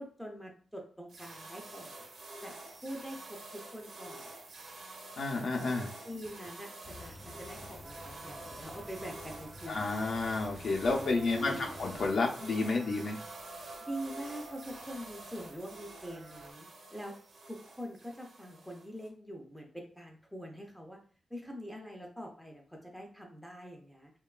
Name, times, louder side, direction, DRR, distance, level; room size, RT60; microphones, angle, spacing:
voice 1, 0.0-2.1 2.4-2.5 2.8-4.3 6.0-9.9 11.1-11.8 13.9-17.1 17.5-21.0 21.3-24.1, equal, 5° left, 1 dB, 0.4 m, -44 dB
sound 1, 1.1-19.1, right 2 dB, 90° right, 0.7 m, -49 dB
voice 2, 5.2-6.0 9.7-13.2, left 3 dB, 65° left, 1 dB, 0.5 m, -31 dB
sound 2, 6.8-12.1, left 2 dB, 20° left, 0.7 m, -51 dB
sound 3, 7.8-16.5, right 2 dB, 50° right, 0.5 m, -51 dB
3.0 x 2.2 x 2.3 m, 0.43 s
wide cardioid pair, 135°, 0 cm